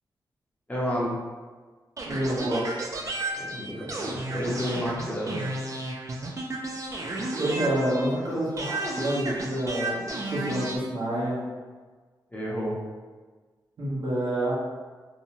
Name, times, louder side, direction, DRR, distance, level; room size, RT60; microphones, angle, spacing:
voice 1, 0.7-1.2 3.3-5.5 12.3-12.8, equal, 20° left, -5 dB, 0.7 m, -31 dB
sound 1, 2.0-8.2 8.6-10.8, right 2 dB, 40° right, 0.4 m, -33 dB
voice 2, 2.0-2.7 7.4-11.5 13.8-14.5, right 1 dB, 80° right, -8 dB, 1.0 m, -28 dB
2.7 x 2.2 x 2.9 m, 1.4 s
cardioid pair, 75°, 8 cm